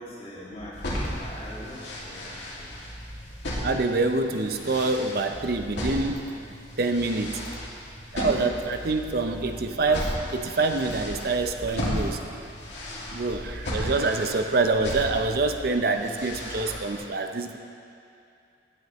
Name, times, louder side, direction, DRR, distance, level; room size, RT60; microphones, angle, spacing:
voice 1, 0.0-2.8 12.9-13.2, equal, 35° left, -8 dB, 2.4 m, -42 dB
sound 1, 0.6-1.6 2.7-3.6 5.3-5.6 7.0-7.6 8.3-9.6 10.7-11.6 13.3-13.6 15.0-15.6 16.3-16.7, equal, 35° right, 2.0 m, -44 dB
sound 2, 0.7-17.0, left 1 dB, 85° left, 2.3 m, -35 dB
voice 2, 3.6-6.3 6.8-7.4 8.1-12.2 13.1-17.6, right 3 dB, 55° right, 6 dB, 0.6 m, -26 dB
17.0 x 7.8 x 3.1 m, 2.5 s
head